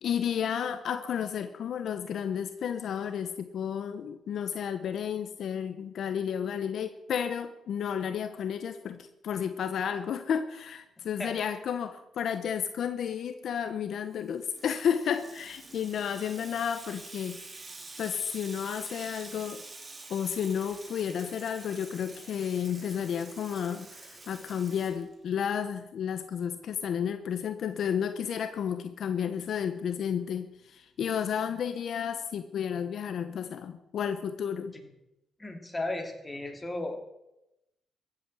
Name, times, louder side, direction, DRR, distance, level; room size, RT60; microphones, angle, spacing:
voice 1, 0.0-17.5 18.0-19.6 20.1-34.7, left 8 dB, 65° left, 9 dB, 1.0 m, -32 dB
voice 2, 11.0-11.3 34.7-34.9 35.4-37.0, left 2 dB, 15° left, 4 dB, 2.8 m, -35 dB
Water tap faucet / Sink (filling or washing), 14.1-25.5, right 3 dB, 25° right, 2.8 m, -47 dB
15.0 x 8.5 x 7.7 m, 0.91 s
cardioid pair, 90°, 0 cm